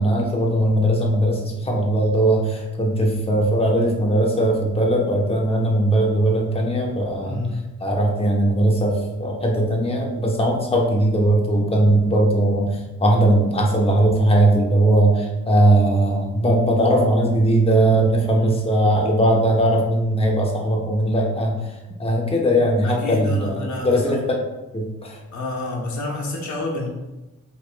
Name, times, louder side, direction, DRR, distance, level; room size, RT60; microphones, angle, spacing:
voice 1, 0.0-7.4 7.8-21.6 22.0-24.2 24.7-25.2, right 1 dB, 20° left, -1 dB, 0.9 m, -19 dB
voice 2, 7.2-7.7 18.3-18.7 22.8-24.0 25.3-26.9, left 2 dB, 70° left, -2 dB, 0.9 m, -29 dB
4.5 x 3.2 x 2.2 m, 1.1 s
cardioid pair, 60°, 30 cm